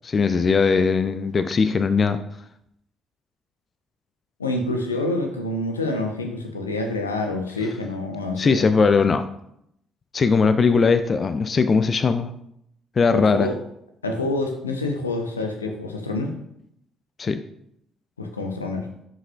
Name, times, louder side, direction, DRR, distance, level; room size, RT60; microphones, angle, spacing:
voice 1, 0.0-2.2 8.4-9.2 10.1-12.3 13.0-13.5 17.2-17.4, left 5 dB, 35° left, 11 dB, 0.4 m, -19 dB
voice 2, 4.4-8.7 13.1-13.6 14.0-16.3 18.2-18.9, left 2 dB, 80° left, 4 dB, 0.7 m, -27 dB
11.0 x 5.1 x 2.3 m, 0.76 s
figure-of-eight pair, 45°, 0 cm